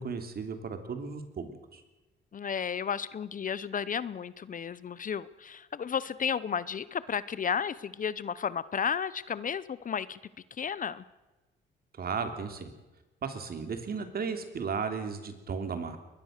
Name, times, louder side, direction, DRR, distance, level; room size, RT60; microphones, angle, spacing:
voice 1, 0.0-1.8 12.0-12.7 13.2-16.0, right 5 dB, 50° right, 7 dB, 3.2 m, -35 dB
voice 2, 2.3-10.2 10.6-11.0, left 7 dB, 40° left, 18 dB, 0.8 m, -33 dB
22.5 x 20.5 x 6.6 m, 1.1 s
cardioid pair, 90°, 20 cm